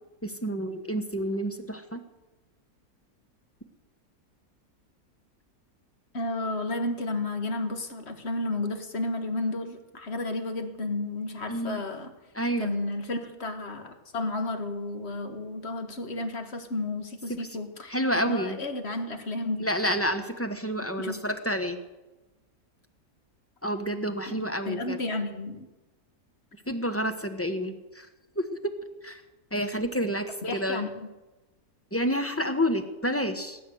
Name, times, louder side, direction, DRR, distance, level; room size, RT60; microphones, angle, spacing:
voice 1, 0.2-2.0 11.5-11.8 12.3-12.7 17.9-18.6 19.6-21.8 23.6-25.0 26.7-28.1 28.4-28.7 29.0-29.2 29.5-30.2 30.5-30.9 31.9-33.6, equal, 10° left, 8 dB, 1.0 m, -29 dB
voice 2, 6.1-12.1 12.6-19.6 21.0-21.2 24.3-24.4 24.7-25.7 30.4-31.1, left 2 dB, 45° left, 7 dB, 1.8 m, -32 dB
18.0 x 9.9 x 7.8 m, 1.1 s
omnidirectional pair, 1.6 m